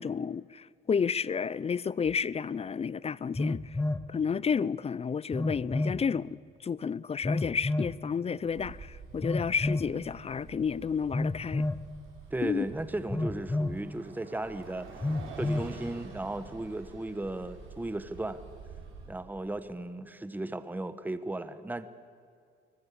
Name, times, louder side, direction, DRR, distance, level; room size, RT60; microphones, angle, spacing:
voice 1, 0.0-3.8 4.1-11.6 12.4-12.7, left 6 dB, 30° left, 0.5 m, -31 dB
Telephone, 2.1-2.2 3.3-4.1 5.3-6.0 7.2-8.0 9.2-9.9 11.1-11.9 13.1-13.8 15.0-15.7, left 2 dB, 15° left, 1.2 m, -30 dB
Bus, 8.4-19.1, right 5 dB, 85° right, 4.8 m, -49 dB
voice 2, 12.3-14.9 15.4-18.4 19.1-21.9, right 2 dB, 10° right, 1.1 m, -35 dB
23.5 x 19.5 x 8.5 m
cardioid pair, 90°, 20 cm